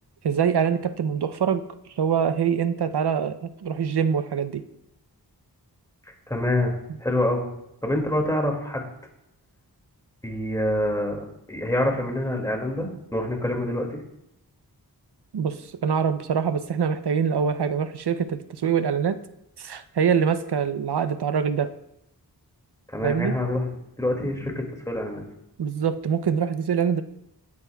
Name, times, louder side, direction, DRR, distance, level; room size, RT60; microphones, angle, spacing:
voice 1, 0.2-1.6 2.0-4.6 15.3-19.2 19.6-21.7 23.0-23.3 25.6-27.0, right 7 dB, 75° right, 11 dB, 0.7 m, -24 dB
voice 2, 6.3-6.7 7.0-7.5 7.8-8.8 10.2-12.9 13.1-14.0 22.9-23.7 24.0-25.2, left 1 dB, 10° left, 1 dB, 2.2 m, -26 dB
18.0 x 8.4 x 2.3 m, 0.84 s
wide cardioid pair, 70°, 40 cm